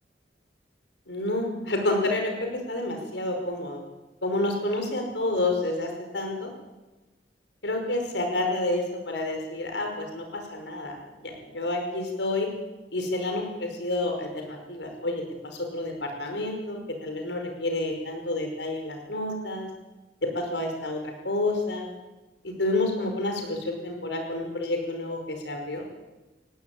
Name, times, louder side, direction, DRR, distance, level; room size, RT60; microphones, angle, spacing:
voice 1, 1.1-3.8 4.2-6.5 7.6-11.0 11.2-12.5 12.9-19.7 20.3-21.9 22.4-25.9, left 2 dB, 85° left, 3 dB, 5.3 m, -29 dB
19.5 x 17.0 x 8.7 m, 1.1 s
head